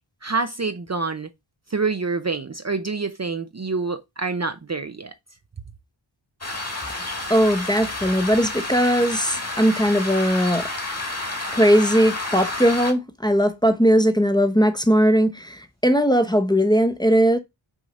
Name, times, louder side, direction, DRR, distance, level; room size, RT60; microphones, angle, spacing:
voice 1, 0.2-1.3 1.7-5.1, right 4 dB, 35° right, 0.7 m, -27 dB
sound 1, 6.4-12.9, left 2 dB, 30° left, 1.9 m, -30 dB
voice 2, 6.9-10.7 11.5-17.4, equal, 10° left, 0.9 m, -19 dB
6.2 x 3.8 x 5.4 m
wide cardioid pair, 65°, 47 cm